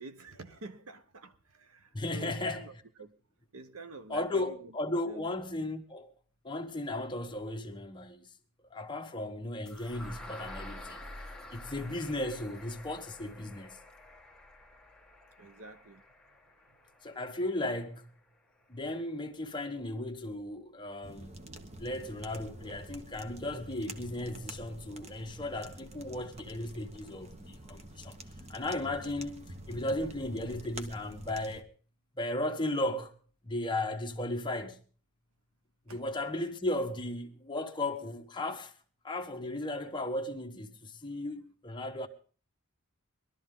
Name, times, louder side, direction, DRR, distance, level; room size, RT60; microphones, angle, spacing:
voice 1, 0.0-3.1 3.5-5.3 15.4-16.0 16.3-16.4 16.7-16.8 35.9-36.0, right 3 dB, 75° right, 1.1 m, -48 dB
voice 2, 1.9-2.7 4.1-6.1 6.4-8.3 8.7-11.0 11.5-13.8 17.0-18.1 18.7-21.3 21.8-28.2 28.5-31.7 32.1-33.1 33.4-34.8 35.9-38.7 39.0-42.1, left 1 dB, 20° left, 1.3 m, -35 dB
sound 1, 9.7-17.6, left 1 dB, 5° left, 1.3 m, -48 dB
sound 2, 21.0-31.6, right 1 dB, 30° right, 1.1 m, -47 dB
21.0 x 12.5 x 3.8 m
head